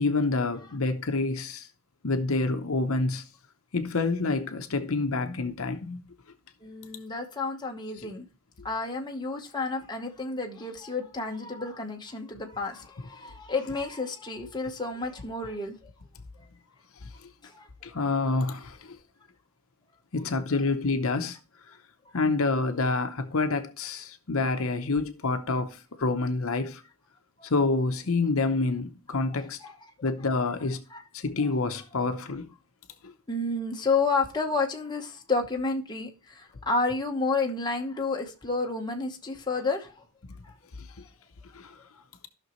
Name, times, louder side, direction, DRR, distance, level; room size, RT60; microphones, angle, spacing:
voice 1, 0.0-1.7 2.0-3.3 3.7-6.0 17.0-17.3 17.8-19.0 20.1-21.4 22.1-26.8 27.4-29.6 30.0-30.8 31.1-32.5 33.0-33.1 40.8-40.9 41.5-41.8, left 3 dB, 65° left, 0.8 m, -27 dB
voice 2, 6.6-8.3 8.6-15.7 17.4-17.9 20.5-20.6 24.5-24.6 27.4-27.5 29.3-30.3 30.9-31.0 31.4-31.5 33.3-40.0 40.4-40.5, left 3 dB, 20° left, 1.1 m, -31 dB
14.5 x 6.0 x 3.1 m
head